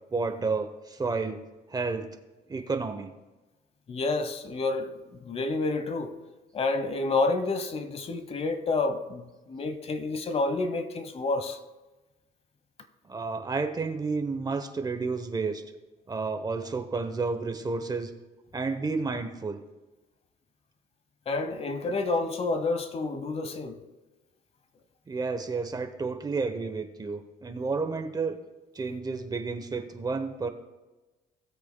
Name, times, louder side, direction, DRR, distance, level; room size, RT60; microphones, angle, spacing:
voice 1, 0.1-1.4 1.7-2.1 2.5-3.1 13.0-15.6 16.1-18.1 18.5-19.6 25.1-28.4 28.7-30.5, right 4 dB, 25° right, 0.8 m, -31 dB
voice 2, 3.9-4.9 5.2-6.1 6.5-11.6 21.3-23.8, left 3 dB, 35° left, 1.0 m, -29 dB
17.5 x 8.0 x 2.2 m
cardioid pair, 110°, 17 cm